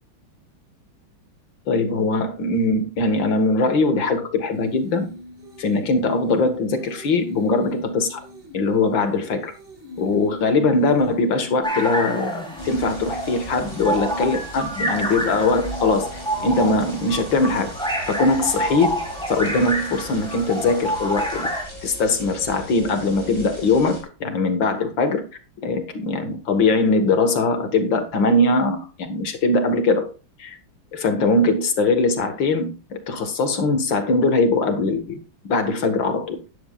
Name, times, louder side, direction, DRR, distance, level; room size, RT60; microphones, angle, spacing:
voice 1, 1.7-5.1 5.6-8.2 8.5-9.5 10.0-16.1 16.4-17.7 18.1-21.5 21.8-25.3 25.6-30.1 30.4-30.6 30.9-36.4, left 3 dB, 70° left, 2.2 m, -21 dB
sound 1, 4.5-16.7, equal, 30° right, 2.2 m, -38 dB
sound 2, 11.6-21.7, equal, ahead, 3.5 m, -28 dB
sound 3, 12.6-24.0, right 1 dB, 15° right, 3.7 m, -39 dB
13.0 x 10.5 x 2.4 m
omnidirectional pair, 2.2 m